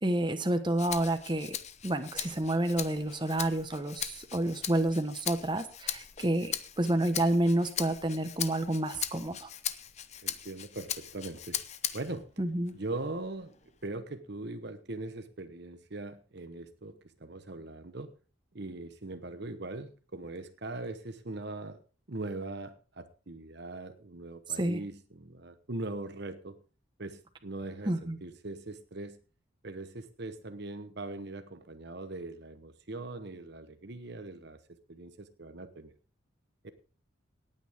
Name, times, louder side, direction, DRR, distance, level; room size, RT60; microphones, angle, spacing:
voice 1, 0.0-1.6 1.8-9.5 12.4-12.7 24.6-24.8 27.8-28.2, right 1 dB, 25° right, 8 dB, 1.2 m, -29 dB
Rattle (instrument), 0.8-12.2 12.7-13.9, left 10 dB, 35° left, 0.7 m, -39 dB
voice 2, 10.2-11.6 11.9-12.3 12.7-13.5 13.8-18.1 18.5-21.8 22.1-26.6 27.0-29.2 29.6-35.9 36.6-36.7, right 2 dB, 55° right, 9 dB, 1.0 m, -41 dB
18.0 x 9.2 x 3.5 m, 0.36 s
head